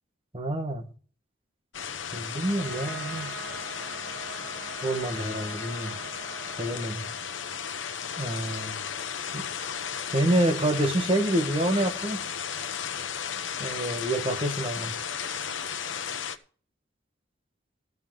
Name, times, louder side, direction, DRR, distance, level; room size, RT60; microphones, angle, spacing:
voice 1, 0.3-0.9 2.1-3.4 4.8-6.0 6.6-7.1 8.2-8.8 9.3-9.5 10.1-12.2 13.6-15.0, right 1 dB, 30° right, 1.6 m, -27 dB
sound 1, 1.7-16.4, left 7 dB, 75° left, 1.0 m, -35 dB
Trumpet, 2.4-7.6, right 5 dB, 50° right, 1.3 m, -44 dB
14.5 x 5.5 x 7.6 m
head